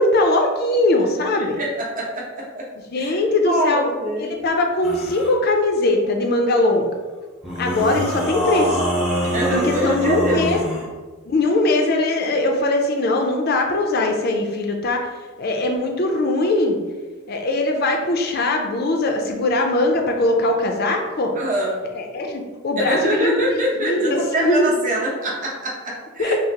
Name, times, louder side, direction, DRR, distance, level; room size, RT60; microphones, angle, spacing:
voice 1, 0.0-1.6 2.9-3.8 4.2-6.9 7.6-8.8 9.5-10.6 11.3-15.1 15.4-16.8 17.3-21.3 22.0-23.3 23.8-24.7 26.2-26.4, left 2 dB, 50° left, 3 dB, 0.4 m, -20 dB
voice 2, 1.3-2.3 2.5-2.6 3.0-3.2 3.4-4.3 9.3-10.4 21.3-21.8 22.8-26.4, right 1 dB, 40° right, -3 dB, 0.9 m, -24 dB
sound 1, 4.8-5.3 7.4-10.9, equal, 5° right, 0.6 m, -24 dB
5.6 x 2.0 x 2.8 m, 1.3 s
head